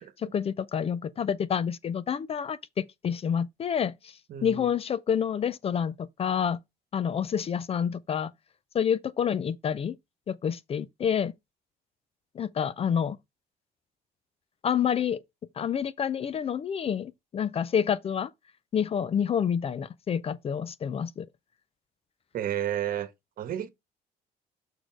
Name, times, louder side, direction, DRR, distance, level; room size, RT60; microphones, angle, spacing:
voice 1, 0.2-6.6 6.9-8.3 8.7-10.0 10.3-11.3 12.3-13.2 14.6-15.2 15.6-18.3 18.7-21.3, left 8 dB, 35° left, 0.4 m, -28 dB
voice 2, 4.3-4.7 22.3-23.1 23.4-23.7, right 10 dB, 60° right, 1.2 m, -31 dB
6.5 x 4.2 x 4.5 m
cardioid pair, 110°, 17 cm